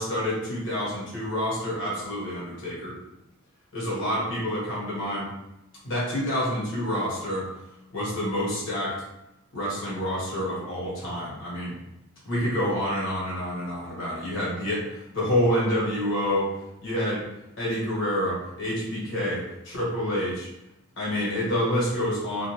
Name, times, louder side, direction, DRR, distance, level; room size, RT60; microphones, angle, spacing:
voice 1, 0.0-3.0 3.7-5.3 5.8-7.5 7.9-9.0 9.5-11.7 12.2-16.5 16.8-17.2 17.6-20.5 21.0-22.5, equal, 65° left, -7 dB, 1.2 m, -28 dB
2.5 x 2.2 x 2.9 m, 0.91 s
head